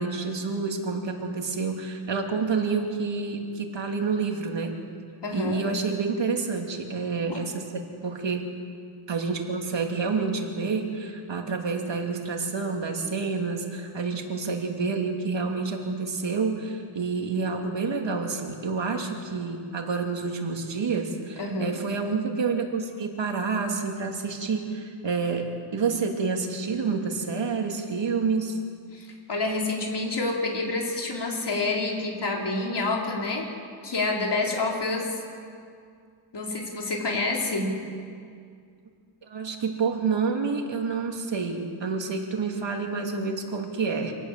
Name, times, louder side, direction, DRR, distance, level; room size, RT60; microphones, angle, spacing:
voice 1, 0.0-4.7 5.3-7.6 8.0-8.5 9.1-28.6 39.2-44.1, right 4 dB, 60° right, 2 dB, 2.9 m, -28 dB
voice 2, 5.2-5.6 7.3-7.4 21.4-21.8 28.9-33.5 33.8-35.1 36.3-37.8, left 2 dB, 55° left, -1 dB, 4.4 m, -28 dB
26.5 x 18.0 x 7.6 m, 2.2 s
wide cardioid pair, 115°, 50 cm